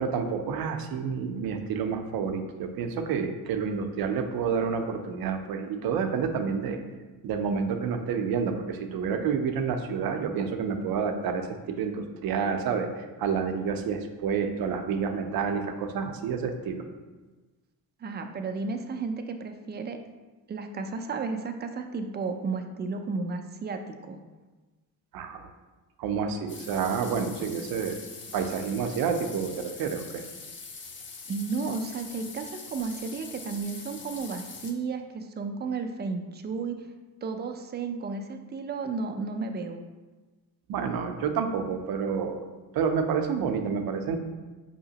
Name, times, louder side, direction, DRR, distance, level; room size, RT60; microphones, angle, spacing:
voice 1, 0.0-6.8 7.2-16.8 25.1-25.5 26.0-28.0 28.3-30.2 40.7-42.4 42.7-44.2, right 6 dB, 75° right, 6 dB, 0.6 m, -29 dB
voice 2, 18.0-20.0 20.5-24.2 31.3-36.8 37.2-39.8, right 4 dB, 30° right, 6 dB, 0.4 m, -33 dB
sound 1, 26.5-34.7, left 4 dB, 35° left, 0.5 m, -43 dB
5.5 x 2.8 x 2.8 m, 1.2 s
cardioid pair, 105°, 37 cm